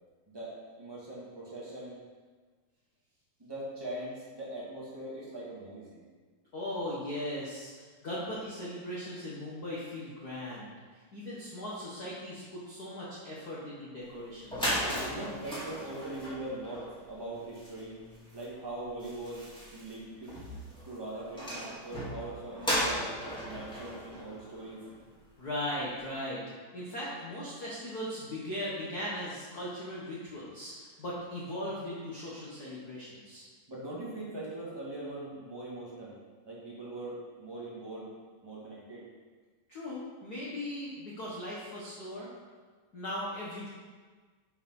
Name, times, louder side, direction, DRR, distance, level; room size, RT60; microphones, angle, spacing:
voice 1, 0.3-2.0 3.4-6.1 15.0-17.9 18.3-19.4 19.7-20.3 20.8-23.1 23.4-24.8 33.7-36.1 36.4-38.1 38.4-39.0, right 1 dB, 20° right, -7 dB, 0.6 m, -41 dB
voice 2, 6.5-14.8 25.4-26.4 26.7-33.5 39.7-42.3 42.9-43.7, left 1 dB, 65° left, -7 dB, 0.9 m, -38 dB
sound 1, 14.1-14.2 14.4-25.2, equal, ahead, 1.2 m, -37 dB
7.0 x 5.0 x 5.5 m, 1.4 s
omnidirectional pair, 3.9 m